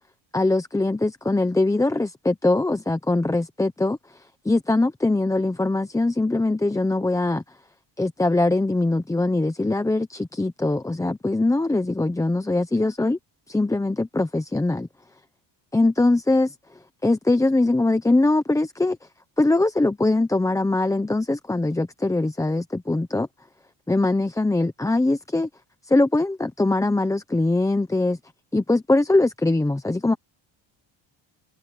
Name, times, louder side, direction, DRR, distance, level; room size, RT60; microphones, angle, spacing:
voice 1, 0.3-7.4 8.0-13.2 13.5-14.9 15.7-16.5 17.0-19.0 19.4-23.3 23.9-25.5 25.9-28.2 28.5-30.2, left 2 dB, 5° left, 0.8 m, -22 dB
cardioid pair, 140°, 47 cm